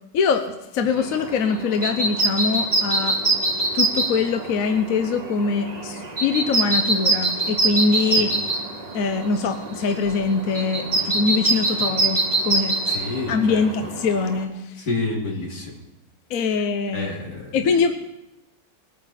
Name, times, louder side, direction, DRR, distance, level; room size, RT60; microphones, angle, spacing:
voice 1, 0.1-3.2 3.7-8.3 8.9-12.8 13.3-14.8 16.3-17.9, left 5 dB, 60° left, 7 dB, 1.1 m, -23 dB
sound 1, 0.9-14.4, right 2 dB, 25° right, 1.3 m, -25 dB
voice 2, 12.9-13.7 14.8-15.7 16.9-17.6, left 3 dB, 80° left, -2 dB, 3.3 m, -29 dB
21.0 x 9.0 x 4.2 m, 0.93 s
omnidirectional pair, 1.8 m